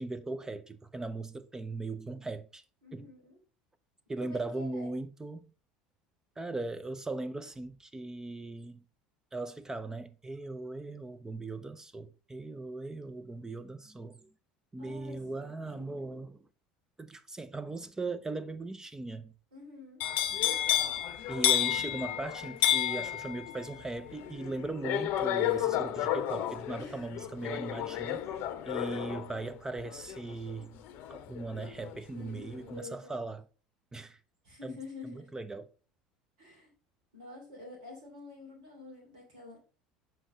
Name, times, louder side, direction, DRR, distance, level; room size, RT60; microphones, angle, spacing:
voice 1, 0.0-2.6 2.9-3.1 4.1-5.5 6.4-8.8 9.3-14.3 14.7-16.5 17.0-19.3 21.3-28.2 28.7-30.8 31.1-33.4 33.9-34.2 34.6-34.8 35.0-35.7, right 2 dB, 15° right, 0.5 m, -39 dB
voice 2, 2.8-3.4 4.2-4.9 14.8-16.0 19.5-20.0 26.8-27.0 32.1-33.1 34.4-35.3 36.4-36.7 37.1-39.6, left 3 dB, 80° right, 2.9 m, -48 dB
sound 1, 20.0-32.0 32.3-32.7, left 11 dB, 60° left, 0.7 m, -31 dB
6.2 x 4.5 x 3.8 m
hypercardioid pair, 75°, 4 cm